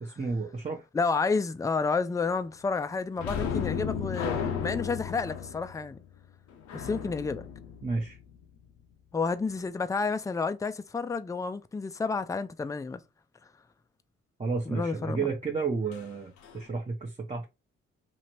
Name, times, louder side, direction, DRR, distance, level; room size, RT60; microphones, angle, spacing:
voice 1, 0.0-0.8 7.8-8.2 14.4-17.5, right 4 dB, 25° right, 0.8 m, -32 dB
voice 2, 0.9-6.0 6.7-7.5 9.1-13.0 14.7-15.3, left 4 dB, 10° left, 0.4 m, -30 dB
sound 1, 3.2-8.6 15.9-16.1 16.4-16.6, left 7 dB, 70° left, 0.6 m, -34 dB
2.8 x 2.5 x 3.1 m
hypercardioid pair, 45°, 29 cm